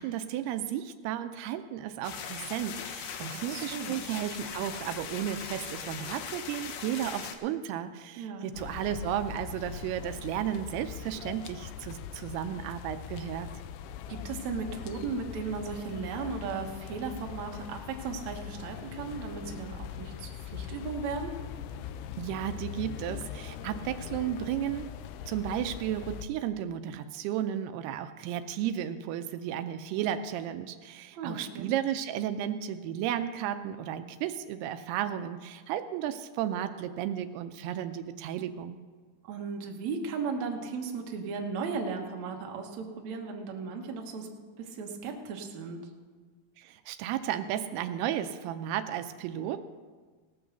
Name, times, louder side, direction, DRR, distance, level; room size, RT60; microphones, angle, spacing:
voice 1, 0.0-13.5 22.2-24.9 25.3-38.8 46.6-49.6, right 10 dB, 85° right, 10 dB, 2.5 m, -34 dB
sound 1, 2.0-7.4, left 8 dB, 75° left, 2.1 m, -40 dB
voice 2, 3.3-4.0 8.2-8.5 14.1-21.3 31.2-31.7 39.2-44.3 44.6-45.8, right 5 dB, 65° right, 2 dB, 2.0 m, -36 dB
sound 2, 8.5-26.3, left 9 dB, 90° left, 2.7 m, -41 dB
17.5 x 6.3 x 6.8 m, 1.4 s
omnidirectional pair, 4.6 m